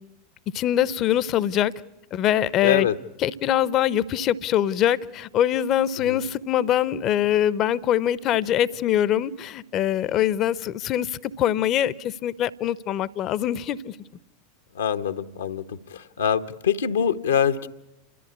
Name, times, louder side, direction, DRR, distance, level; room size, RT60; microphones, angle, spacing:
voice 1, 0.5-1.7 2.1-2.9 3.2-13.9, left 11 dB, 40° left, 19 dB, 0.8 m, -23 dB
voice 2, 2.6-3.0 6.1-6.2 14.7-15.6 15.9-17.7, left 8 dB, 70° left, 9 dB, 0.9 m, -24 dB
29.5 x 13.5 x 9.7 m, 0.95 s
figure-of-eight pair, 85°, 0 cm